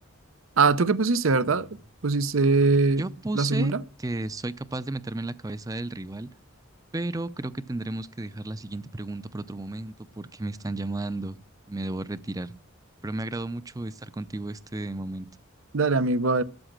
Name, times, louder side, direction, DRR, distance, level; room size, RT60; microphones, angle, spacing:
voice 1, 0.6-1.7 2.0-3.0 3.3-3.8 15.7-16.4, right 3 dB, 75° right, 0.8 m, -22 dB
voice 2, 3.0-3.7 4.0-6.3 6.9-11.4 11.7-12.5 13.0-15.3, right 2 dB, 15° right, 0.6 m, -33 dB
13.0 x 9.1 x 7.4 m
head